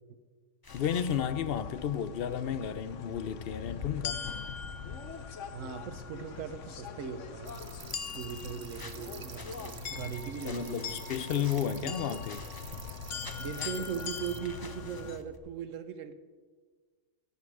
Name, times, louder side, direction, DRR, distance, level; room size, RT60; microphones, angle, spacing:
sound 1, 0.6-1.2 8.7-9.8 10.4-11.7 12.2-12.9 13.2-13.9 14.4-15.4, left 3 dB, 25° left, 0.6 m, -49 dB
sound 2, 0.7-15.2, left 6 dB, 75° left, 1.2 m, -41 dB
voice 1, 0.7-4.2 10.4-12.4, left 8 dB, 60° left, 0.7 m, -32 dB
voice 2, 5.5-7.7 8.1-11.1 11.8-12.2 13.4-16.1, right 8 dB, 80° right, 1.2 m, -39 dB
sound 3, 7.4-14.4, right 7 dB, 45° right, 0.5 m, -50 dB
16.0 x 8.5 x 4.8 m
omnidirectional pair, 1.3 m